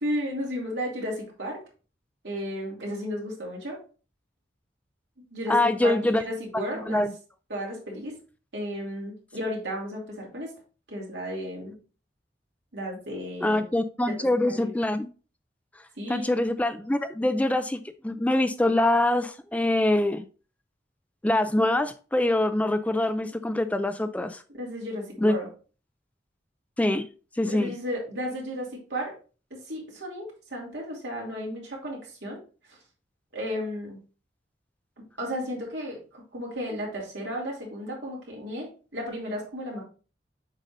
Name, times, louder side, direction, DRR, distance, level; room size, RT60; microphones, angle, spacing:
voice 1, 0.0-1.6 2.2-3.8 5.2-7.1 7.5-8.2 8.5-10.5 10.9-11.8 12.7-13.7 14.1-14.2 14.5-14.7 16.0-16.3 24.6-25.5 27.4-29.1 29.5-32.4 32.7-32.8 33.3-34.0 35.0-39.8, equal, 80° right, -2 dB, 2.8 m, -34 dB
voice 2, 5.5-6.2 6.8-7.1 13.4-15.1 16.1-20.2 21.2-24.4 25.2-25.4 26.8-27.0 27.4-27.7, left 1 dB, 10° left, 10 dB, 0.3 m, -24 dB
7.4 x 5.2 x 2.6 m, 0.36 s
head